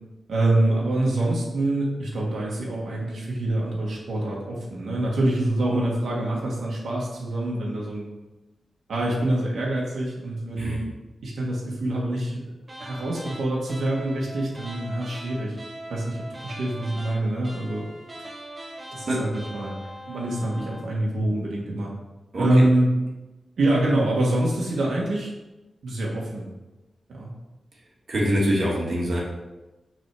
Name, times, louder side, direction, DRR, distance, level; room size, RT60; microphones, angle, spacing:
voice 1, 0.3-8.1 8.9-10.9 11.2-12.5 12.8-15.5 15.9-17.9 18.9-19.8 20.1-21.9 22.4-22.9 23.6-25.3 25.8-26.5 27.1-27.3, right 1 dB, 80° right, -4 dB, 1.6 m, -25 dB
sound 1, 12.6-20.9, right 1 dB, 20° right, 0.9 m, -41 dB
voice 2, 22.3-22.7 28.1-29.2, equal, 45° right, -3 dB, 1.8 m, -24 dB
6.4 x 4.1 x 6.1 m, 1.1 s
wide cardioid pair, 175°, 0 cm